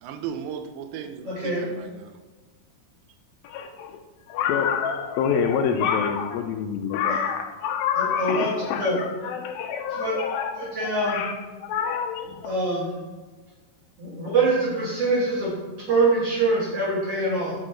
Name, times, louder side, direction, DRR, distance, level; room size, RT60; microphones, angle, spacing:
voice 1, 0.0-2.2, right 8 dB, 85° right, 2.0 m, -36 dB
voice 2, 1.2-1.6 7.1-7.2 8.0-8.9 10.0-10.1 10.6-11.2 12.4-12.9 14.0-15.5 15.9-17.5, right 2 dB, 50° right, 2.0 m, -24 dB
voice 3, 4.3-12.5, left 7 dB, 85° left, 2.1 m, -26 dB
6.5 x 5.2 x 4.3 m
omnidirectional pair, 4.6 m